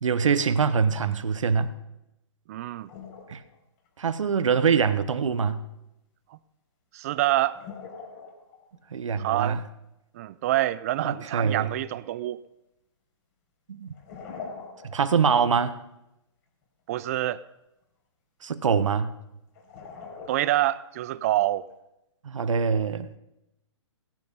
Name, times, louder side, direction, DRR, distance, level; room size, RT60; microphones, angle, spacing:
voice 1, 0.0-1.7 3.3-3.4 4.0-5.6 8.9-9.6 11.0-11.7 13.7-13.9 14.8-15.7 18.4-19.1 22.2-23.2, right 6 dB, 80° right, 1.2 m, -24 dB
voice 2, 2.5-2.9 6.9-7.6 9.2-9.6 10.2-12.4 16.9-17.4 20.3-21.7, right 14 dB, 30° right, 0.4 m, -26 dB
sound 1, 2.9-3.5 3.9-4.0 4.4-4.5 7.4-8.8 12.2-12.3 13.8-15.3 15.6-15.7 19.5-21.0, left 5 dB, 35° left, 4.2 m, -42 dB
18.0 x 11.0 x 5.4 m
hypercardioid pair, 155°, 16 cm